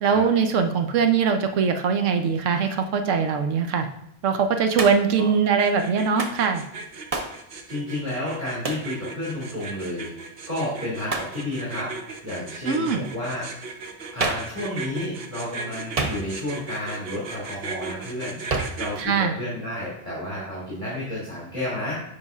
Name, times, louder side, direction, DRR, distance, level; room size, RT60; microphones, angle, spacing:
voice 1, 0.0-3.9 4.2-6.6 12.7-13.1 19.0-19.4, right 6 dB, 85° right, 6 dB, 1.1 m, -22 dB
Hands, 4.8-5.2 6.2-6.4 7.1-7.4 8.6-8.9 11.1-11.4 14.2-14.6 16.0-16.5 18.5-18.9, right 3 dB, 40° right, 0.6 m, -28 dB
sound 1, 5.6-19.0, right 4 dB, 55° right, 1.0 m, -37 dB
voice 2, 7.7-10.1 10.5-11.9 12.2-13.8 14.1-22.0, left 1 dB, 15° right, -9 dB, 2.2 m, -31 dB
9.3 x 5.2 x 2.4 m, 0.79 s
omnidirectional pair, 1.3 m